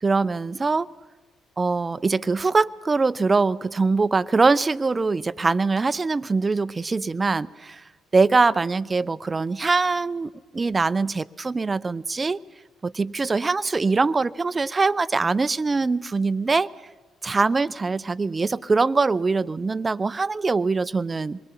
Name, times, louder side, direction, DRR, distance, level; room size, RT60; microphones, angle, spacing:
voice 1, 0.0-0.9 1.6-7.8 8.1-12.4 12.8-16.7 17.2-21.4, right 4 dB, 30° right, 18 dB, 0.7 m, -23 dB
27.0 x 22.0 x 5.6 m, 1.3 s
figure-of-eight pair, 45°, 0 cm